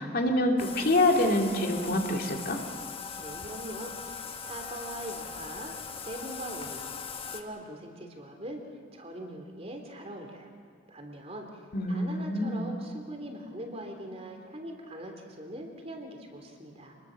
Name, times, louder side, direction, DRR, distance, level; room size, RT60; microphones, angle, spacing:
voice 1, 0.0-2.6 11.7-12.6, left 1 dB, 50° left, 1 dB, 2.6 m, -26 dB
Bathtub (filling or washing), 0.6-7.4, left 6 dB, 30° left, 1.3 m, -40 dB
voice 2, 3.2-6.9 7.3-8.6 8.9-10.5 10.9-11.6 11.9-17.0, right 1 dB, 35° right, 3 dB, 3.3 m, -41 dB
28.0 x 21.0 x 6.6 m, 2.3 s
head